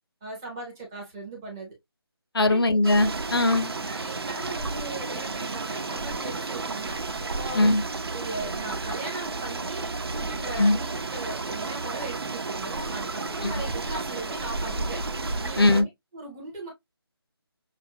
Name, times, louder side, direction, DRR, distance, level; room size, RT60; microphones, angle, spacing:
voice 1, 0.2-1.7 2.4-2.6 3.8-7.0 7.3-7.8 8.1-15.0 15.4-16.7, right 2 dB, 10° right, 0.6 m, -38 dB
voice 2, 2.3-3.7 7.5-7.8 10.6-10.8 13.4-13.5 15.6-15.8, left 2 dB, 65° left, 0.7 m, -20 dB
sound 1, 2.8-15.8, right 3 dB, 70° right, 0.9 m, -32 dB
5.9 x 2.0 x 2.7 m
figure-of-eight pair, 170°, 13 cm